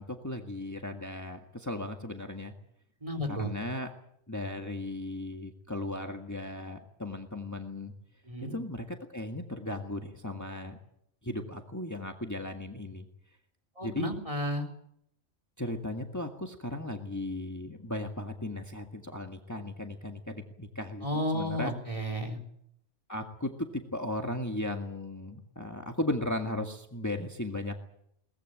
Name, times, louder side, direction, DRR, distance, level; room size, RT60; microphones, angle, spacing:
voice 1, 0.0-2.5 3.3-3.9 4.3-7.9 8.5-10.8 11.2-13.0 13.8-14.1 15.6-21.7 23.1-27.8, left 1 dB, 15° left, 4 dB, 1.8 m, -36 dB
voice 2, 3.0-3.5 8.3-8.6 13.8-14.6 21.0-22.4, equal, 30° right, 6 dB, 3.9 m, -32 dB
22.0 x 19.5 x 9.0 m, 0.74 s
omnidirectional pair, 1.2 m